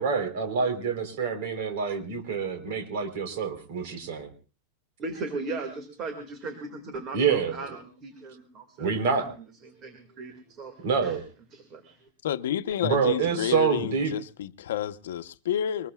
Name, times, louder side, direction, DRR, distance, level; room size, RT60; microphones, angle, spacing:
voice 1, 0.0-4.3 7.1-7.5 8.8-9.3 10.8-11.2 12.8-14.1, right 6 dB, 50° right, 3.7 m, -27 dB
voice 2, 5.0-11.2 11.5-12.1, right 3 dB, 25° right, 2.0 m, -38 dB
voice 3, 12.2-15.9, left 10 dB, 85° left, 0.8 m, -30 dB
24.0 x 21.0 x 2.3 m
supercardioid pair, 180°, 0 cm